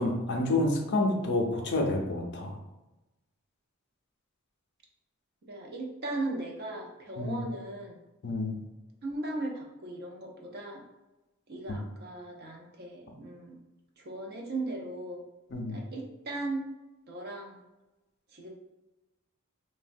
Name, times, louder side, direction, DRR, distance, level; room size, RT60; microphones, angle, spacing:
voice 1, 0.0-2.6 7.2-7.4 8.2-8.6 11.7-11.8 15.5-15.8, left 2 dB, 55° left, 1 dB, 0.5 m, -29 dB
voice 2, 5.4-8.0 9.0-10.8 11.5-13.6 14.0-15.2 15.7-16.7 17.1-17.6 18.3-18.5, right 2 dB, 50° right, 1 dB, 0.5 m, -37 dB
3.2 x 2.1 x 2.5 m, 1.0 s
head